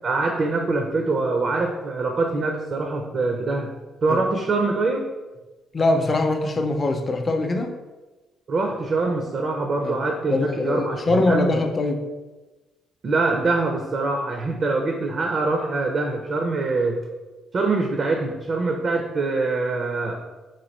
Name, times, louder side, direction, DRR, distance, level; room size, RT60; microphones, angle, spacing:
voice 1, 0.0-3.7 4.0-5.1 8.5-11.6 13.0-17.0 17.5-20.2, right 3 dB, 50° right, 3 dB, 0.4 m, -24 dB
voice 2, 5.7-7.7 9.8-10.0 10.3-12.0, left 2 dB, 35° left, 5 dB, 0.4 m, -22 dB
3.0 x 2.6 x 4.1 m, 1.2 s
cardioid pair, 90°, 0 cm